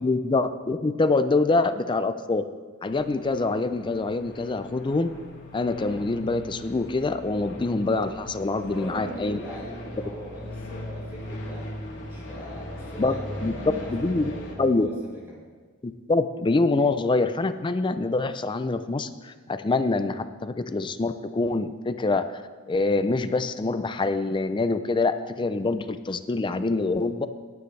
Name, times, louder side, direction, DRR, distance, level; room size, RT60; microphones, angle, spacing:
voice 1, 0.0-2.5 2.8-5.1 5.5-9.4 13.0-13.1 13.4-13.5 13.9-14.3 14.6-14.9 15.8-22.4 22.7-27.3, left 3 dB, 20° left, 11 dB, 0.4 m, -25 dB
sound 1, 2.8-14.6, left 1 dB, 60° left, 2.2 m, -39 dB
voice 2, 8.5-11.7 11.9-14.9 15.3-15.4, equal, 10° right, -7 dB, 2.6 m, -40 dB
19.0 x 9.5 x 3.3 m, 1.5 s
head